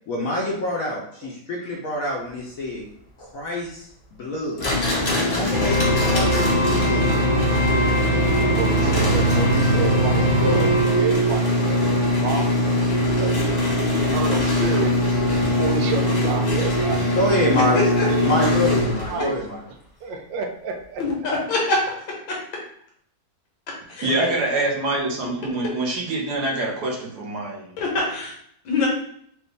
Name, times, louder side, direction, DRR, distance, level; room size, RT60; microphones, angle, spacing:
voice 1, 0.1-2.8 3.2-4.7 5.2-7.0 17.1-17.8 18.2-19.6, left 1 dB, 60° left, -2 dB, 0.9 m, -26 dB
sound 1, 4.6-19.3, left 1 dB, 45° left, 0.5 m, -22 dB
sound 2, 5.5-11.8, right 1 dB, 30° right, 1.0 m, -23 dB
voice 2, 8.4-13.4 13.8-15.0 15.4-17.1 17.7-18.5 19.1-19.4 20.0-21.0 24.5-24.6, right 4 dB, 80° right, 4 dB, 1.3 m, -30 dB
voice 3, 21.0-21.8 23.9-24.1 27.8-28.3 28.7-28.9, left 3 dB, 90° left, -2 dB, 2.0 m, -23 dB
voice 4, 24.0-27.7, right 2 dB, 65° right, -2 dB, 1.5 m, -25 dB
4.8 x 2.5 x 3.3 m, 0.66 s
omnidirectional pair, 2.0 m